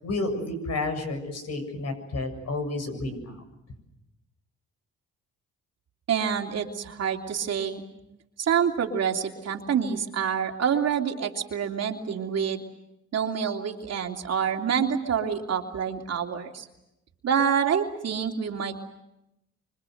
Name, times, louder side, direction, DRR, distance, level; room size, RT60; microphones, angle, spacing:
voice 1, 0.0-3.4, left 2 dB, 60° left, 7 dB, 7.4 m, -31 dB
voice 2, 6.1-7.8 8.4-12.6 13.1-16.7 17.2-18.8, right 7 dB, 55° right, 3 dB, 3.1 m, -27 dB
26.0 x 25.0 x 8.0 m, 0.89 s
cardioid pair, 90°, 30 cm